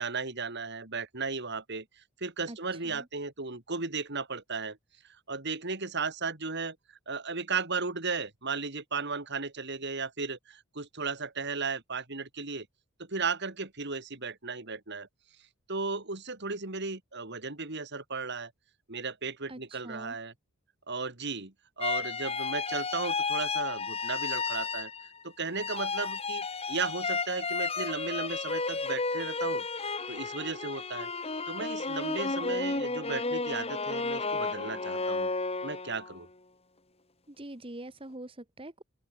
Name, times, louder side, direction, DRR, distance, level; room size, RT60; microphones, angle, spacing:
voice 1, 0.0-4.8 5.3-12.7 13.0-15.1 15.7-18.5 18.9-20.3 20.9-24.9 25.2-29.7 30.1-31.1 31.5-35.3 35.6-36.3, right 4 dB, 50° right, 2.8 m, -35 dB
voice 2, 2.5-3.1 19.5-20.2 37.3-38.8, right 1 dB, 25° right, 1.6 m, -44 dB
sound 1, 21.8-25.2 25.5-36.2, left 4 dB, 25° left, 3.1 m, -32 dB
open air
head